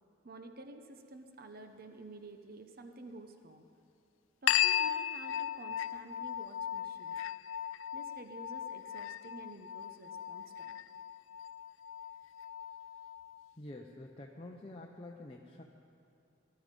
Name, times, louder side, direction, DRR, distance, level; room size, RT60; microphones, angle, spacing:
voice 1, 0.2-3.7 4.4-7.2 7.9-10.8, right 2 dB, 50° right, 6 dB, 0.9 m, -50 dB
sound 1, 4.5-13.5, left 11 dB, 85° left, 0.3 m, -36 dB
voice 2, 13.6-15.6, left 1 dB, 30° left, 0 dB, 0.8 m, -48 dB
19.0 x 12.5 x 5.3 m, 2.5 s
head